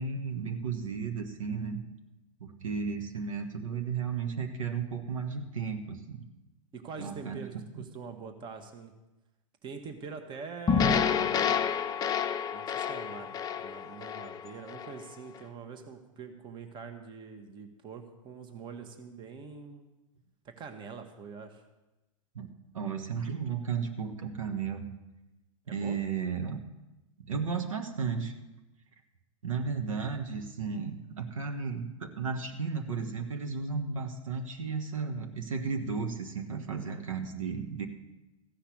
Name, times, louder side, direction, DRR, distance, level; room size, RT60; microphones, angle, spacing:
voice 1, 0.0-1.8 2.4-6.2 7.0-7.6 22.3-24.8 25.7-26.6 27.2-28.3 29.4-37.9, right 5 dB, 70° right, 4 dB, 1.4 m, -34 dB
voice 2, 6.7-8.9 9.6-11.4 12.5-19.9 20.4-21.6 25.7-26.0 36.9-37.0, right 5 dB, 25° right, 6 dB, 1.4 m, -44 dB
sound 1, 10.7-15.0, left 7 dB, 20° left, 0.7 m, -29 dB
15.0 x 5.8 x 8.4 m, 1.0 s
figure-of-eight pair, 100°, 17 cm